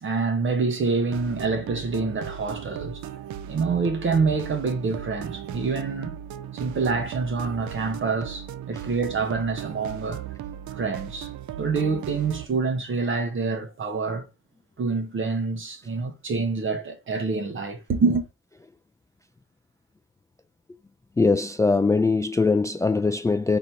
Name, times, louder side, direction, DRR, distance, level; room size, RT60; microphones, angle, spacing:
voice 1, 0.0-3.0 3.5-6.2 6.5-10.2 10.7-11.3 11.6-14.3 14.8-18.3, right 4 dB, 40° right, 1.0 m, -26 dB
sound 1, 1.1-12.5, right 10 dB, 70° right, 0.5 m, -37 dB
voice 2, 21.2-23.6, left 3 dB, 10° left, 0.3 m, -21 dB
4.0 x 2.7 x 4.4 m
cardioid pair, 90°, 30 cm